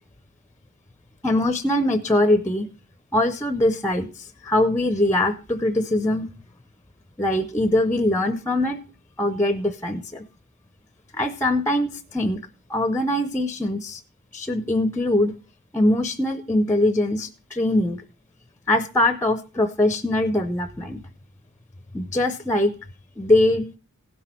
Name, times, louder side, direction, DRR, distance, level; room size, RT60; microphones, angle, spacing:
voice 1, 1.2-2.7 3.1-6.3 7.2-8.8 9.2-10.3 11.1-12.4 12.7-14.0 14.3-15.4 15.7-18.0 18.7-21.0 21.9-22.7 23.2-23.7, left 1 dB, 15° left, 10 dB, 0.6 m, -22 dB
16.0 x 6.1 x 4.4 m, 0.35 s
head